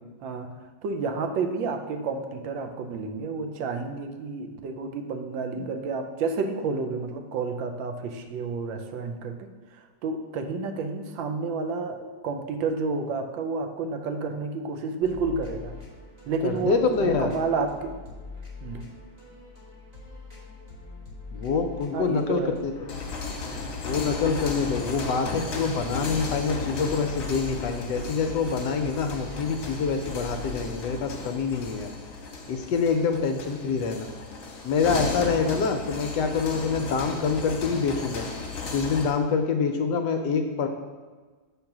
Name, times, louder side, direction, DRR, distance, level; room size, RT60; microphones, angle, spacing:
voice 1, 0.8-9.4 9.7-15.8 16.3-18.0 18.6-18.9 21.9-22.6, right 4 dB, 80° right, 6 dB, 1.4 m, -30 dB
sound 1, 15.0-31.9, left 3 dB, 20° right, 1.4 m, -44 dB
voice 2, 16.4-17.3 21.3-22.7 23.8-31.9 32.5-34.1 34.6-38.3 38.7-40.7, left 5 dB, 75° left, 6 dB, 1.1 m, -26 dB
sound 2, 22.7-39.2, left 4 dB, 50° left, 1.2 m, -35 dB
sound 3, 22.9-30.8, left 1 dB, 50° right, 0.3 m, -43 dB
7.3 x 3.8 x 5.8 m, 1.4 s
omnidirectional pair, 2.1 m